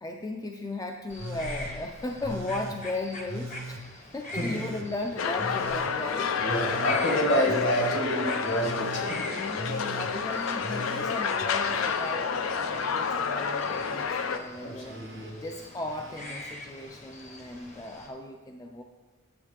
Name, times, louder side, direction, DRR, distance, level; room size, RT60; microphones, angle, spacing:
voice 1, 0.0-3.8 4.1-6.4 7.1-7.5 9.3-15.0 15.4-18.8, left 2 dB, 15° left, 3 dB, 0.3 m, -36 dB
sound 1, 1.1-18.1, left 1 dB, 35° left, 0.8 m, -44 dB
Telephone, 1.2-1.7 2.2-2.8 3.3-3.8 4.3-4.9 5.4-5.9 6.4-7.0 7.5-8.0 8.5-9.1 9.6-10.1 10.6-12.2 12.5-13.2 13.8-14.3 14.8-15.3 15.9-16.4 17.6-17.7, right 1 dB, 65° right, 0.6 m, -40 dB
voice 2, 4.3-4.6 6.4-9.4 14.6-15.4, equal, 60° left, 0 dB, 1.5 m, -29 dB
sound 2, 5.2-14.4, left 5 dB, 85° left, 0.5 m, -29 dB
8.9 x 7.0 x 3.3 m, 1.3 s
head